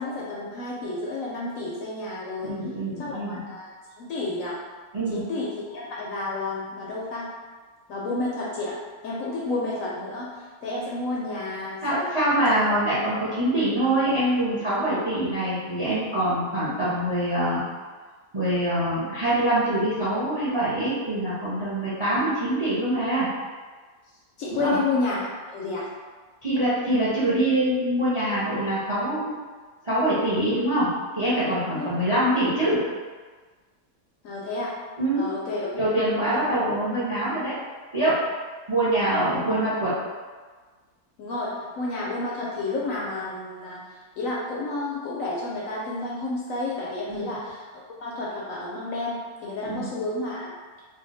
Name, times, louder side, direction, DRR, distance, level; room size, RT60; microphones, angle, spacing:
voice 1, 0.0-2.6 3.0-3.7 4.0-4.6 5.1-7.3 7.9-8.8 9.0-10.3 10.6-12.1 24.4-25.9 31.7-31.9 34.2-34.7 35.2-35.7 41.2-43.8 44.2-47.6 48.0-50.5, left 2 dB, 70° left, -5 dB, 0.8 m, -30 dB
voice 2, 2.4-3.4 4.9-5.3 11.8-17.6 18.3-23.3 24.5-24.7 26.4-29.3 29.8-32.8 35.0-35.3 35.7-37.5 37.9-38.2 38.7-39.9 47.1-47.3 49.6-49.9, right 1 dB, 35° right, -10 dB, 0.5 m, -24 dB
2.7 x 2.2 x 3.9 m, 1.4 s
omnidirectional pair, 1.7 m